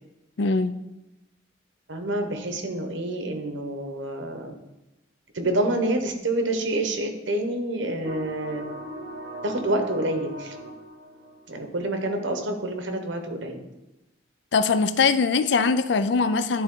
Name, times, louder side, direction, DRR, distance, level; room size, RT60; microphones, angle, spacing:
voice 1, 0.4-0.7 14.5-16.6, left 4 dB, 70° left, 13 dB, 0.4 m, -22 dB
voice 2, 1.9-4.5 5.3-8.6 9.4-10.5 11.5-13.6, right 1 dB, 90° right, 5 dB, 1.1 m, -27 dB
sound 1, 8.0-11.9, right 1 dB, 70° right, 1.1 m, -39 dB
11.0 x 4.2 x 3.8 m, 0.97 s
head